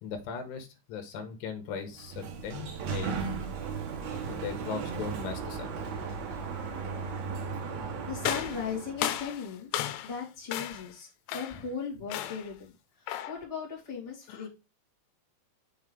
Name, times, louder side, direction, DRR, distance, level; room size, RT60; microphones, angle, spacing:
voice 1, 0.0-3.3 4.3-5.8 14.3-14.5, left 6 dB, 75° left, 6 dB, 3.1 m, -39 dB
Sliding door, 1.8-9.2, right 5 dB, 75° right, 1.7 m, -36 dB
voice 2, 7.8-12.7 13.0-14.5, left 6 dB, 35° left, -4 dB, 0.5 m, -38 dB
sound 1, 8.2-10.2 10.5-10.9 11.3-11.7 12.1-12.5 13.1-13.4, left 12 dB, 90° left, 3.1 m, -34 dB
6.7 x 3.2 x 5.3 m, 0.28 s
omnidirectional pair, 5.2 m